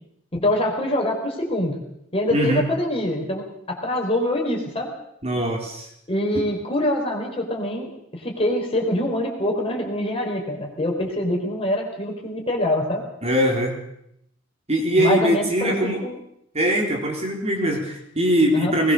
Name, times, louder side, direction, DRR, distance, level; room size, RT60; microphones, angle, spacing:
voice 1, 0.3-1.8 2.1-4.9 6.1-13.1 15.0-16.2 18.5-18.7, left 1 dB, 30° left, 1 dB, 4.6 m, -24 dB
voice 2, 2.3-2.7 5.2-5.9 6.3-6.4 13.2-13.7 14.7-16.0 16.5-18.9, equal, 30° right, 1 dB, 3.9 m, -21 dB
20.5 x 20.0 x 6.8 m, 0.76 s
head